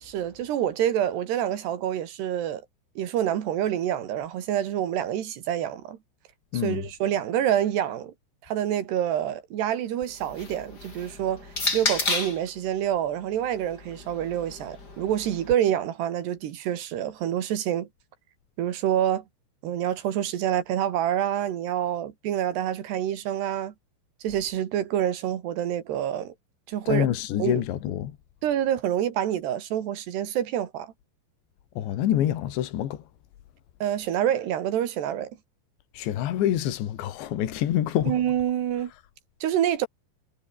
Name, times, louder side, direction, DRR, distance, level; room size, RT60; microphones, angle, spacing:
voice 1, 0.0-2.6 3.0-6.0 6.6-8.1 8.4-11.5 11.7-17.9 18.6-19.2 19.6-23.7 24.2-26.3 26.7-27.1 27.4-27.6 28.4-30.9 33.8-35.3 38.1-38.9 39.4-39.9, right 10 dB, 70° right, 3.9 m, -27 dB
voice 2, 6.5-6.9 26.9-28.2 31.8-33.1 35.9-38.2, left 11 dB, 75° left, 4.3 m, -26 dB
sound 1, 10.0-12.5 13.4-15.5, left 3 dB, 20° left, 4.7 m, -32 dB
omnidirectional pair, 5.3 m